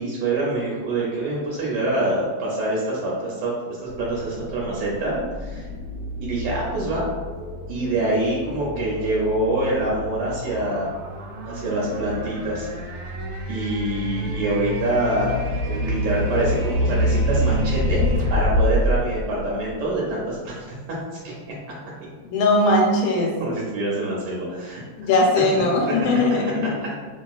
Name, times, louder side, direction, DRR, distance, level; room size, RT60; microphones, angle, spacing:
voice 1, 0.0-3.5 3.8-5.7 6.2-7.0 7.7-10.9 11.4-12.7 13.5-15.3 15.6-20.7 21.1-21.3 23.4-24.8 26.6-26.9, right 2 dB, 70° right, -5 dB, 1.1 m, -25 dB
Warp Speed, 3.9-20.1, equal, 90° right, 1.4 m, -27 dB
voice 2, 22.3-23.3 25.0-26.8, left 2 dB, 85° left, -1 dB, 1.4 m, -19 dB
2.9 x 2.7 x 2.3 m, 1.4 s
omnidirectional pair, 2.2 m